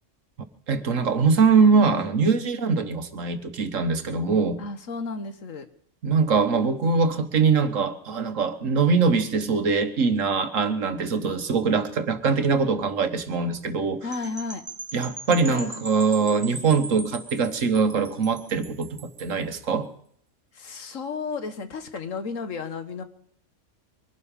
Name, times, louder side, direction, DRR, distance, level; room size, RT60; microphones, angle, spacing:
voice 1, 0.7-4.6 6.0-14.0 14.9-19.9, right 5 dB, 80° right, 9 dB, 1.7 m, -22 dB
voice 2, 4.6-5.7 14.0-14.6 15.5-15.9 20.5-23.0, left 4 dB, 80° left, 9 dB, 1.7 m, -33 dB
sound 1, 14.1-19.4, right 3 dB, 20° right, 0.6 m, -40 dB
22.5 x 12.0 x 5.2 m, 0.65 s
omnidirectional pair, 1.3 m